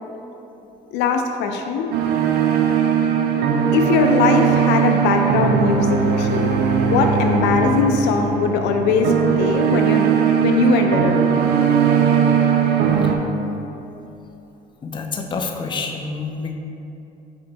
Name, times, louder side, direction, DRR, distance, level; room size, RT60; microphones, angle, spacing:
voice 1, 0.9-1.9 3.7-6.5 6.8-10.1 10.4-11.4, left 4 dB, 85° left, 4 dB, 0.4 m, -20 dB
sound 1, 1.9-13.2, right 7 dB, 70° right, 0.4 m, -19 dB
voice 2, 14.8-16.5, left 4 dB, 30° left, 3 dB, 0.4 m, -27 dB
4.3 x 2.6 x 3.9 m, 2.9 s
cardioid pair, 110°, 17 cm